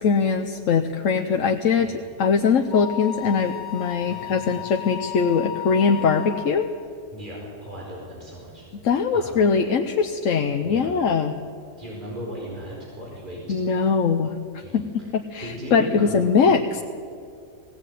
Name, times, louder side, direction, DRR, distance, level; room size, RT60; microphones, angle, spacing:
voice 1, 0.0-1.9 2.2-6.7 8.7-11.3 13.5-14.3 14.7-14.8 15.1-16.8, left 5 dB, 85° left, 5 dB, 1.3 m, -21 dB
Wind instrument woodwind instrument, 2.7-6.6, left 11 dB, 60° left, 2.0 m, -34 dB
voice 2, 4.0-4.7 7.1-8.6 9.1-9.4 10.6-11.0 11.8-13.6 14.6-15.1 15.4-16.2, right 1 dB, 40° right, -4 dB, 4.9 m, -37 dB
19.5 x 16.5 x 9.1 m, 2.4 s
omnidirectional pair, 1.3 m